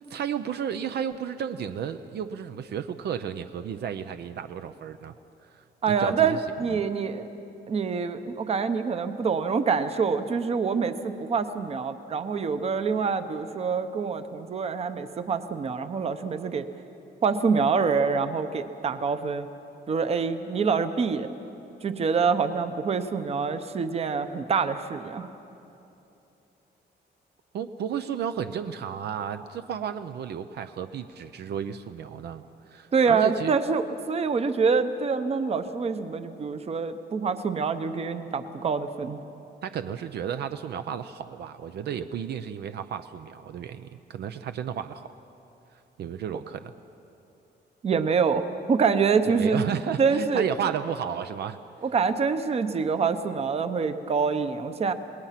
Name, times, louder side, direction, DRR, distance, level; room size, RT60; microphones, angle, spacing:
voice 1, 0.0-5.1 5.5-6.4 6.7-6.8 27.5-33.6 39.6-45.1 46.0-46.7 49.3-51.6, right 8 dB, 65° right, 9 dB, 0.6 m, -33 dB
voice 2, 5.8-7.3 7.7-16.7 17.2-19.5 19.9-21.3 21.8-25.3 32.9-39.2 47.8-49.6 50.0-50.4 51.8-54.9, right 5 dB, 35° right, 10 dB, 0.8 m, -26 dB
28.0 x 20.0 x 5.9 m, 2.9 s
wide cardioid pair, 170°, 18 cm